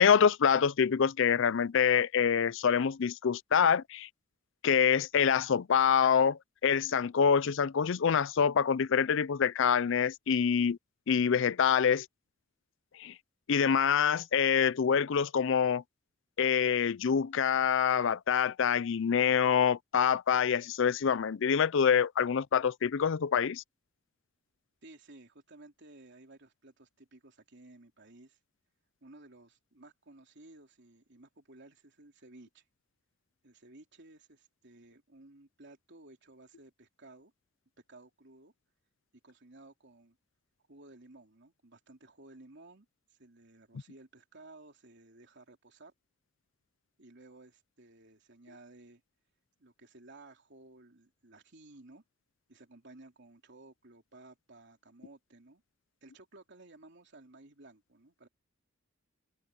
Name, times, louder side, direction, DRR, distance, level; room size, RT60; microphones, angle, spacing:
voice 1, 0.0-4.1 4.6-10.8 11.1-12.1 13.0-13.1 13.5-15.8 16.4-23.6, left 7 dB, 65° left, 0.5 m, -26 dB
voice 2, 24.8-28.4 29.0-32.6 33.4-37.3 37.9-38.5 39.2-40.2 40.7-45.9 47.0-49.0 49.6-52.0 52.5-55.6 56.0-58.3, right 2 dB, 60° right, 3.4 m, -56 dB
head